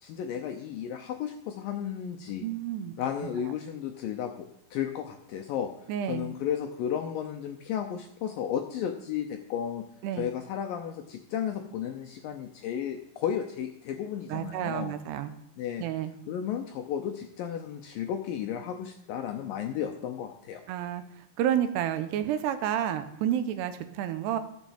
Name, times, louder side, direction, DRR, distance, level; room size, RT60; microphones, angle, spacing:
voice 1, 0.0-2.5 3.0-5.7 6.1-9.9 10.2-14.9 15.6-15.8 16.3-20.6, left 9 dB, 75° left, 4 dB, 2.1 m, -33 dB
voice 2, 2.4-2.9 5.9-6.3 10.0-10.3 14.3-15.3 15.8-16.1 20.7-21.0 21.4-24.4, right 10 dB, 85° right, 10 dB, 2.9 m, -30 dB
12.0 x 7.2 x 7.1 m, 0.77 s
omnidirectional pair, 4.8 m